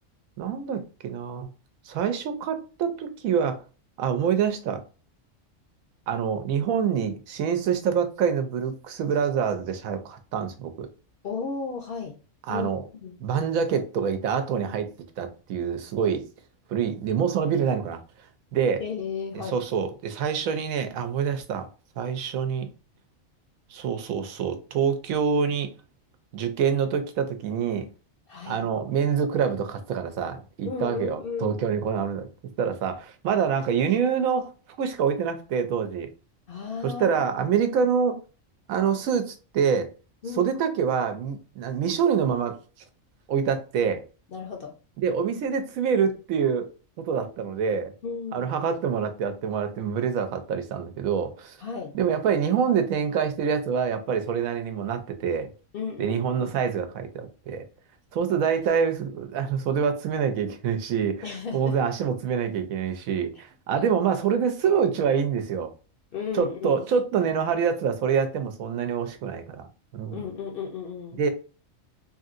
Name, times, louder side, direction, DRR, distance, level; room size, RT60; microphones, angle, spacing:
voice 1, 0.4-1.5 1.9-3.6 4.0-4.8 6.1-10.9 12.5-12.8 13.2-14.9 15.2-16.2 16.7-18.0 18.5-18.8 19.3-21.7 22.0-22.7 23.7-25.7 26.3-27.9 28.5-32.3 32.6-34.5 34.8-36.1 36.8-38.2 38.7-39.9 40.4-42.6 43.3-44.0 45.0-46.7 47.1-47.9 48.3-51.6 51.9-55.5 56.0-57.6 58.1-61.3 61.5-65.7 66.3-69.6 69.9-70.2 71.2-71.3, right 7 dB, 85° right, 1.1 m, -26 dB
voice 2, 11.2-12.2 12.5-12.7 13.0-13.2 18.8-19.6 28.3-28.7 30.6-31.6 36.5-37.7 40.2-40.5 44.3-44.7 48.0-48.5 51.6-52.0 55.7-56.5 61.2-61.8 63.7-63.9 66.1-66.9 70.1-71.2, left 5 dB, 60° left, 0.6 m, -34 dB
3.2 x 2.7 x 2.4 m
omnidirectional pair, 1.4 m